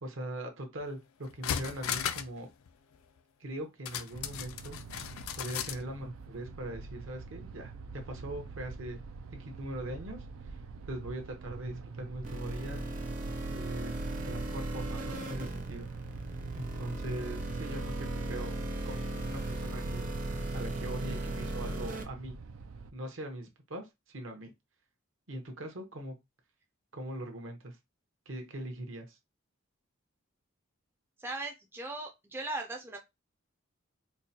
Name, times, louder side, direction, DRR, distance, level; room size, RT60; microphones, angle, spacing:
voice 1, 0.0-2.5 3.4-9.0 9.4-10.5 10.9-12.9 13.5-15.9 16.5-18.6 18.8-20.2 20.5-22.4 22.9-24.5 25.3-26.1 26.9-27.8 28.3-29.2, right 1 dB, 65° right, 0.9 m, -41 dB
sound 1, 0.8-0.9 1.2-2.4 2.7-2.8 3.9-5.8 6.2-6.3, left 8 dB, 90° left, 0.4 m, -36 dB
sound 2, 4.1-22.9, right 4 dB, 90° right, 0.4 m, -44 dB
sound 3, 12.2-22.0, right 1 dB, 40° right, 0.7 m, -37 dB
voice 2, 31.2-33.0, right 2 dB, 10° right, 0.4 m, -38 dB
4.4 x 2.2 x 2.7 m
head